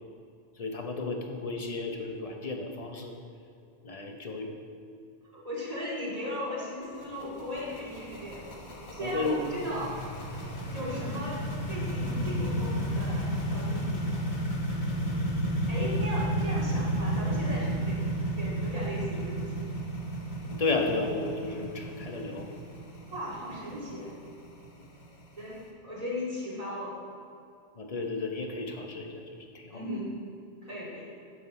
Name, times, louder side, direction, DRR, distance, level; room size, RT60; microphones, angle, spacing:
voice 1, 0.6-3.2 3.8-4.5 9.0-9.4 20.4-22.5 27.8-29.2 29.5-29.8, left 3 dB, 35° left, 2 dB, 0.9 m, -33 dB
voice 2, 5.3-8.4 8.9-10.0 10.7-11.4 11.7-14.2 15.7-18.0 18.3-19.6 23.1-24.1 25.4-27.1 29.7-30.1 30.6-31.1, left 1 dB, 35° right, -7 dB, 2.5 m, -37 dB
sound 1, 6.8-25.6, right 1 dB, 65° left, 1.5 m, -32 dB
9.9 x 6.8 x 4.2 m, 2.5 s
omnidirectional pair, 1.1 m